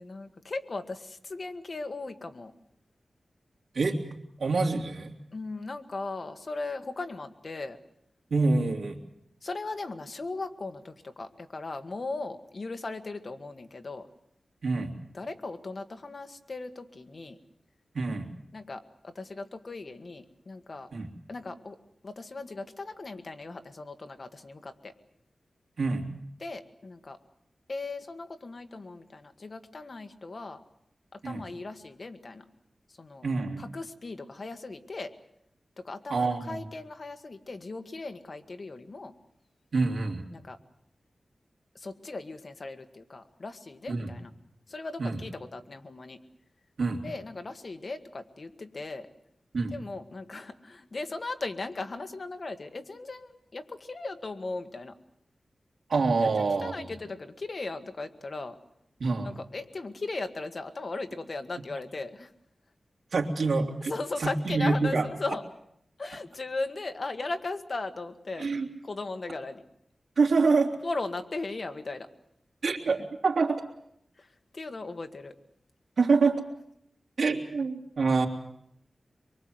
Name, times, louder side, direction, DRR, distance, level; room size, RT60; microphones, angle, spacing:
voice 1, 0.0-2.5 5.3-7.8 9.4-14.1 15.1-17.4 18.5-20.9 21.3-21.8 22.0-24.9 26.4-27.2 27.7-30.6 31.1-32.4 33.0-33.3 33.6-35.1 35.8-39.1 40.3-40.6 41.8-44.3 44.7-46.2 47.0-49.1 49.6-54.9 56.2-56.3 56.6-58.6 59.2-62.3 63.9-65.4 66.0-68.5 68.8-69.6 70.8-72.1 74.2-74.3 74.5-75.3, left 3 dB, 45° left, 7 dB, 1.6 m, -37 dB
voice 2, 4.4-5.2 8.3-9.0 14.6-14.9 17.9-18.3 20.9-21.1 25.8-26.1 31.2-31.4 33.2-33.6 36.1-36.6 39.7-40.3 43.9-44.1 45.0-45.2 46.8-47.0 49.5-49.7 55.9-56.9 59.0-59.3 63.1-63.9 64.2-65.1 68.4-68.7 70.2-70.7 72.6-73.6 76.0-76.4 77.2-78.3, right 4 dB, 75° right, 2 dB, 3.2 m, -26 dB
24.0 x 23.5 x 7.9 m, 0.74 s
wide cardioid pair, 110°, 0 cm